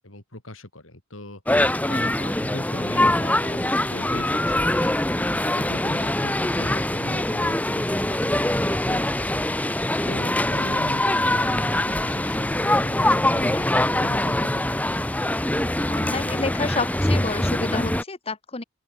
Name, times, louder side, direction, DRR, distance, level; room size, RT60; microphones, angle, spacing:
voice 1, 0.0-5.0 5.4-14.9, left 1 dB, 70° left, 4.8 m, -40 dB
sound 1, 1.5-18.0, left 1 dB, 5° left, 1.0 m, -23 dB
voice 2, 15.9-18.6, left 3 dB, 30° left, 1.2 m, -29 dB
open air
head